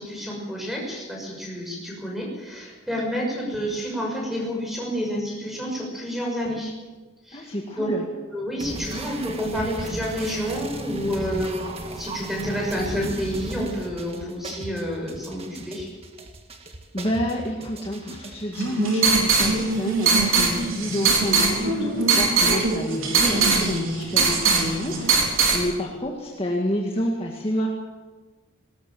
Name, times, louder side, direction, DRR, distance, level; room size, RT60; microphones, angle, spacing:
voice 1, 0.0-6.7 7.2-7.9 8.2-11.7 12.0-15.9, equal, ahead, -1 dB, 6.1 m, -29 dB
voice 2, 7.3-8.0 16.9-25.2 25.5-27.7, equal, 25° left, -1 dB, 1.9 m, -29 dB
sound 1, 8.6-18.6, right 2 dB, 30° right, 1.8 m, -36 dB
sound 2, 18.5-25.6, right 4 dB, 70° right, 4.1 m, -21 dB
19.5 x 18.5 x 7.8 m, 1.3 s
head